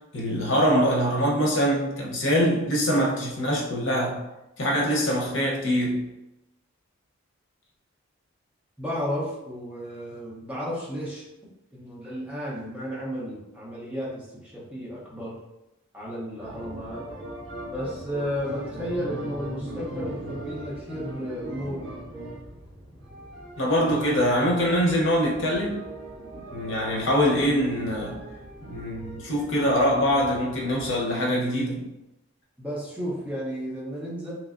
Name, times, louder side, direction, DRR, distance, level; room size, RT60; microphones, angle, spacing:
voice 1, 0.1-4.2 4.6-6.1 23.6-25.8 26.5-28.2 28.6-31.9, equal, 65° left, -2 dB, 0.9 m, -24 dB
voice 2, 8.8-11.2 11.7-15.4 15.9-17.0 17.7-21.9 32.6-34.3, equal, 5° right, -6 dB, 0.8 m, -33 dB
sound 1, 16.4-31.0, right 1 dB, 60° right, 1.5 m, -39 dB
3.2 x 3.0 x 2.5 m, 0.92 s
head